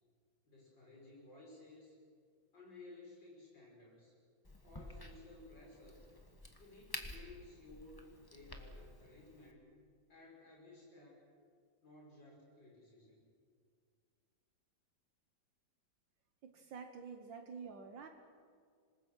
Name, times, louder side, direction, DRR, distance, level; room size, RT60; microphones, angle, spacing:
voice 1, 0.4-2.0 2.5-4.1 4.6-6.0 6.5-9.7 10.1-11.2 11.8-13.2, left 2 dB, 65° left, -3 dB, 6.6 m, -57 dB
Crack, 4.4-9.5, left 1 dB, 15° left, 1.3 m, -51 dB
voice 2, 16.4-18.1, right 5 dB, 70° right, 5 dB, 1.9 m, -49 dB
26.0 x 20.5 x 6.3 m, 2.1 s
omnidirectional pair, 2.1 m